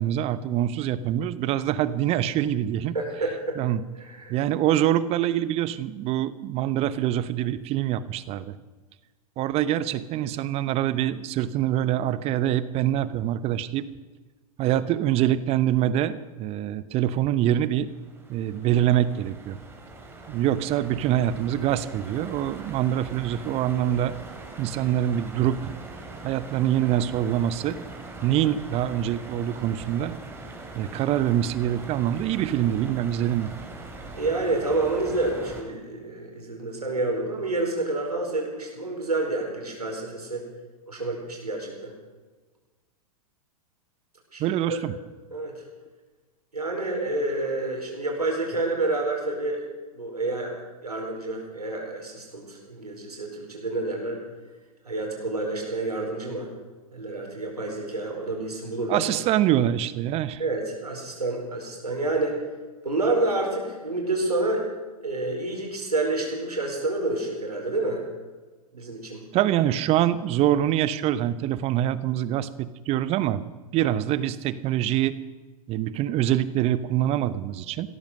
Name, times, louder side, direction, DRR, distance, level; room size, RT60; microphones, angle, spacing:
voice 1, 0.0-2.9 3.6-3.8 4.3-8.6 9.4-13.9 14.6-17.9 18.3-19.6 20.3-24.1 24.6-25.7 26.2-27.8 28.2-30.1 30.7-33.5 44.4-44.9 58.9-60.4 69.3-73.4 73.7-75.1 75.7-77.9, right 12 dB, 30° right, 15 dB, 0.9 m, -25 dB
voice 2, 2.9-3.6 4.0-4.4 34.1-40.4 40.9-41.9 44.3-44.8 45.3-45.6 46.5-49.6 49.9-50.5 50.8-54.2 54.8-56.5 56.9-59.1 60.4-62.4 62.8-64.6 65.0-68.0 68.7-69.2, right 2 dB, 85° right, 0 dB, 4.7 m, -28 dB
sound 1, 17.7-35.6, right 3 dB, 10° right, 3.0 m, -42 dB
16.5 x 13.5 x 6.4 m, 1.3 s
figure-of-eight pair, 105°, 19 cm